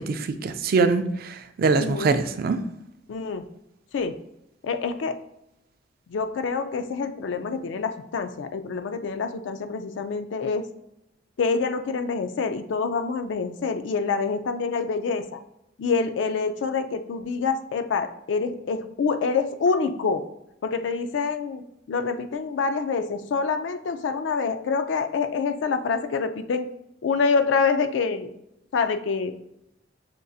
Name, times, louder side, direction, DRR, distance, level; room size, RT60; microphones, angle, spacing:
voice 1, 0.0-2.6, right 4 dB, 55° right, 9 dB, 0.3 m, -23 dB
voice 2, 1.8-2.2 3.1-3.4 3.9-4.2 4.6-5.2 6.1-10.7 11.4-15.4 15.8-20.2 20.6-26.7 27.0-28.3 28.7-29.3, left 5 dB, 80° left, 9 dB, 0.4 m, -26 dB
6.1 x 2.4 x 2.6 m, 0.83 s
head